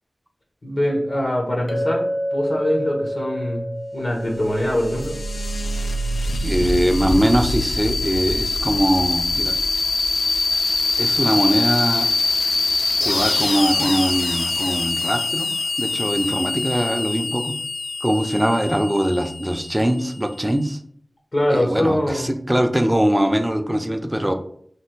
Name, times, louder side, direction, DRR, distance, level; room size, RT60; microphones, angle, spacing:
voice 1, 0.6-2.1 2.3-5.2 21.3-22.4, left 1 dB, 60° left, -1 dB, 1.0 m, -23 dB
Chink clink, 1.7-6.1, equal, 30° left, 0.8 m, -29 dB
sound 1, 4.2-20.5, left 2 dB, 80° left, 0.3 m, -24 dB
voice 2, 6.4-9.6 11.0-12.1 13.0-15.5 15.8-17.6 18.0-20.8 21.5-24.3, equal, 15° right, 6 dB, 0.4 m, -21 dB
3.3 x 2.5 x 4.4 m, 0.63 s
wide cardioid pair, 65°, 0 cm